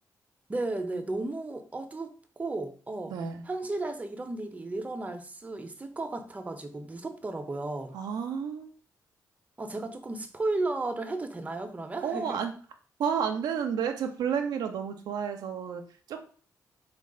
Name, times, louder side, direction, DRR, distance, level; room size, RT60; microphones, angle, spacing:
voice 1, 0.5-3.1 3.5-8.0 9.6-12.4, right 2 dB, 20° right, 0.5 m, -34 dB
voice 2, 3.1-3.4 7.9-8.8 12.0-12.5 13.0-16.3, right 7 dB, 85° right, 0.4 m, -31 dB
3.2 x 2.3 x 3.7 m
cardioid pair, 65°, 7 cm